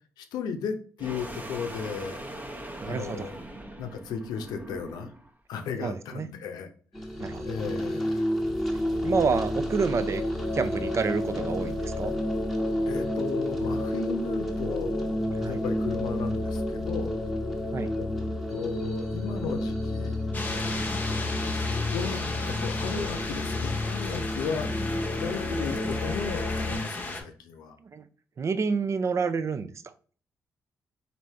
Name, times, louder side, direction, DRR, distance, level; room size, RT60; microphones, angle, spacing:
voice 1, 0.2-2.3 2.8-3.4 3.8-5.1 5.5-6.7 7.4-8.2 12.9-15.2 15.5-17.2 18.0-18.1 18.5-20.2 21.9-24.7 25.1-27.8, left 6 dB, 85° left, 7 dB, 0.6 m, -35 dB
sound 1, 1.0-5.3, right 1 dB, 25° right, 0.8 m, -40 dB
voice 2, 2.8-3.3 5.8-6.3 7.2-7.4 9.0-10.2 10.5-12.1 15.4-15.6 17.7-17.9 27.9-28.0 28.4-29.7, right 5 dB, 45° right, 12 dB, 0.4 m, -28 dB
sound 2, 6.9-26.8, left 1 dB, 5° left, 1.1 m, -30 dB
sound 3, 20.3-27.2, left 2 dB, 25° left, 0.8 m, -35 dB
3.3 x 2.6 x 4.2 m, 0.42 s
supercardioid pair, 60°, 7 cm